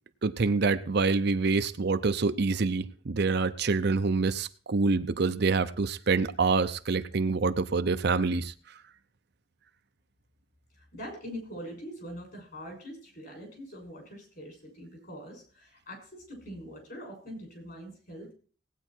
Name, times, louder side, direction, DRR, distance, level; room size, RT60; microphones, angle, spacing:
voice 1, 0.2-8.5, right 4 dB, 55° right, 0.7 m, -26 dB
voice 2, 10.8-18.3, equal, 50° left, 6.8 m, -43 dB
18.0 x 9.1 x 4.5 m
head